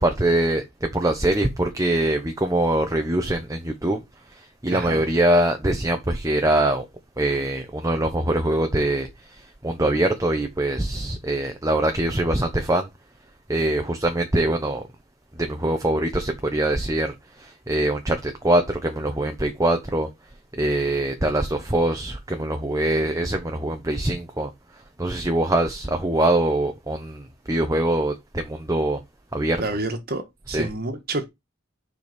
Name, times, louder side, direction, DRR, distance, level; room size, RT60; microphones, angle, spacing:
voice 1, 0.0-4.0 4.4-6.8 7.2-12.9 13.5-14.8 15.4-20.1 20.6-24.5 25.0-29.0 29.3-29.6 30.5-30.7, right 1 dB, 15° right, 1.0 m, -23 dB
voice 2, 4.7-5.0 29.6-31.3, right 2 dB, 45° right, 1.7 m, -29 dB
6.9 x 5.2 x 5.2 m
head